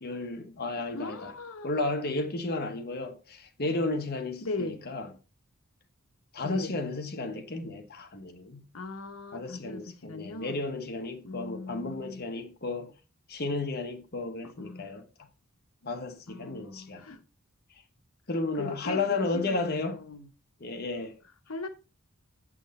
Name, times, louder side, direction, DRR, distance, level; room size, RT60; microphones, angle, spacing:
voice 1, 0.0-1.3 1.6-5.1 6.3-8.6 9.3-12.9 13.3-15.1 15.8-17.1 18.3-20.0 20.6-21.2, left 2 dB, 45° left, 1.1 m, -33 dB
voice 2, 0.9-1.7 4.4-4.8 6.4-6.7 8.7-10.6 11.2-12.3 14.4-14.9 15.8-15.9 16.3-17.2 18.5-20.3 21.5-21.7, left 3 dB, 70° left, 1.0 m, -39 dB
7.6 x 6.3 x 4.1 m
head